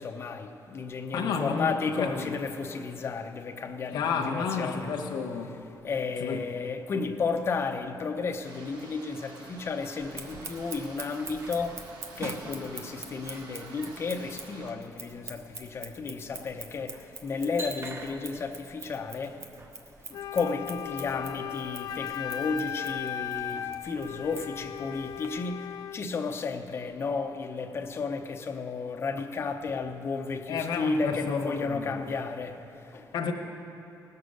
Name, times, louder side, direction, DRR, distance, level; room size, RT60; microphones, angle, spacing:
voice 1, 0.0-4.9 5.8-11.9 12.2-19.4 20.1-33.1, left 4 dB, 35° left, 0.7 m, -33 dB
voice 2, 1.1-2.4 3.9-5.6 6.2-6.4 30.5-32.0 33.1-33.3, left 5 dB, 85° left, 1.0 m, -31 dB
sound 1, 8.4-14.7, right 3 dB, 85° right, 1.4 m, -49 dB
Scissors, 10.0-25.3, right 3 dB, 40° right, 0.8 m, -44 dB
Wind instrument woodwind instrument, 20.1-26.0, left 10 dB, 70° left, 0.4 m, -37 dB
18.5 x 6.7 x 6.4 m
cardioid pair, 165°, 7 cm